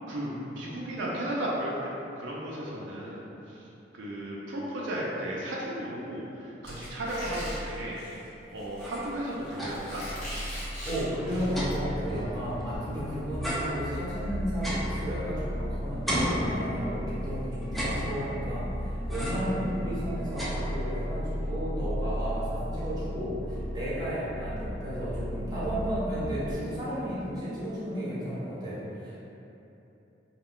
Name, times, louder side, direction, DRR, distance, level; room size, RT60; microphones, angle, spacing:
voice 1, 0.1-3.2 3.5-3.6 3.9-8.0 8.5-10.0, right 1 dB, 80° right, -4 dB, 0.4 m, -34 dB
Squeak, 6.6-11.7, equal, 40° left, 0.9 m, -39 dB
sound 1, 8.6-10.0 10.4-10.5 10.7-13.0 13.4-15.6 16.1-17.1 17.6-18.5 19.1-19.6 20.0-21.1, equal, ahead, 0.4 m, -35 dB
voice 2, 10.8-29.2, equal, 20° right, -10 dB, 0.8 m, -33 dB
sound 2, 11.3-26.5, equal, 90° left, 1.1 m, -35 dB
2.3 x 2.2 x 3.6 m, 2.9 s
head